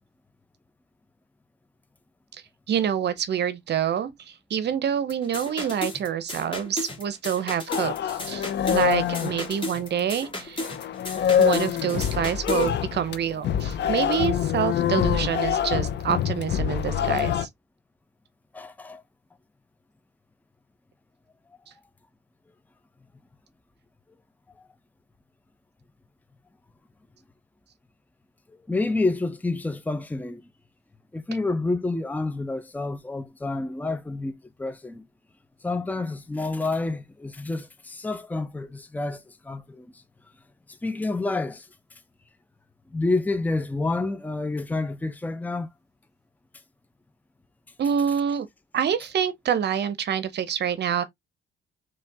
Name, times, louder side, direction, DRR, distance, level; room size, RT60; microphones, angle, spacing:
voice 1, 2.7-10.7 11.4-17.5 47.8-48.5 48.7-51.0, right 8 dB, 60° right, 0.8 m, -27 dB
sound 1, 5.1-12.7, left 2 dB, 25° left, 2.3 m, -35 dB
sound 2, 7.7-10.3 10.6-17.5, left 9 dB, 60° left, 0.7 m, -25 dB
voice 2, 18.5-19.0 24.6-24.7 28.7-30.5 31.1-34.3 34.6-35.0 35.6-40.0 40.7-41.7 42.9-45.7, left 2 dB, 10° left, 0.7 m, -29 dB
4.4 x 3.2 x 3.4 m
cardioid pair, 90°, 20 cm